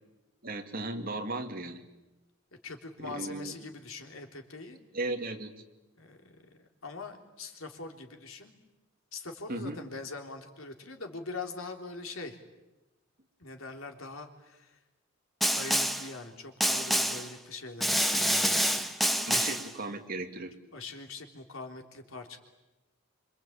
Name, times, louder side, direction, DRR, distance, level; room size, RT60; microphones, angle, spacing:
voice 1, 0.4-1.8 3.0-3.5 4.9-5.5 9.5-9.8 19.2-20.5, right 2 dB, 45° right, 5 dB, 2.6 m, -36 dB
voice 2, 2.6-4.8 6.0-8.5 9.1-12.4 13.4-14.8 15.5-18.9 19.3-19.5 20.7-22.4, left 3 dB, 85° left, 5 dB, 3.4 m, -43 dB
Snare drum, 15.4-16.1 16.6-17.3 17.8-19.7, equal, ahead, 1.3 m, -27 dB
26.5 x 25.5 x 8.7 m, 1.0 s
head